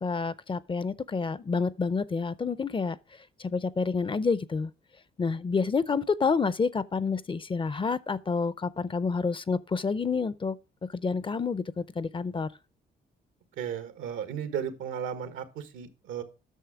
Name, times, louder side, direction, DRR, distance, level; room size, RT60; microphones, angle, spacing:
voice 1, 0.0-3.0 3.4-4.7 5.2-10.6 10.9-12.5, left 5 dB, 25° left, 0.5 m, -28 dB
voice 2, 13.6-16.2, right 8 dB, 90° right, 1.4 m, -35 dB
9.2 x 6.4 x 4.9 m
cardioid pair, 90°, 20 cm